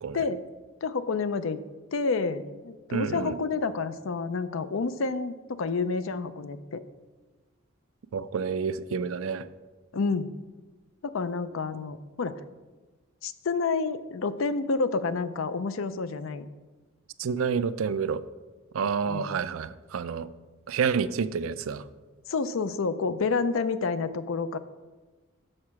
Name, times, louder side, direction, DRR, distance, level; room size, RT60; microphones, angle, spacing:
voice 1, 0.8-1.6 1.9-6.8 9.9-10.3 11.0-12.4 13.2-16.5 19.0-19.3 22.3-24.6, left 4 dB, 80° left, 13 dB, 0.5 m, -29 dB
voice 2, 2.9-3.4 8.1-9.5 17.2-18.2 18.7-20.3 20.7-21.8, right 6 dB, 85° right, 14 dB, 0.4 m, -29 dB
6.4 x 6.4 x 5.9 m, 1.2 s
head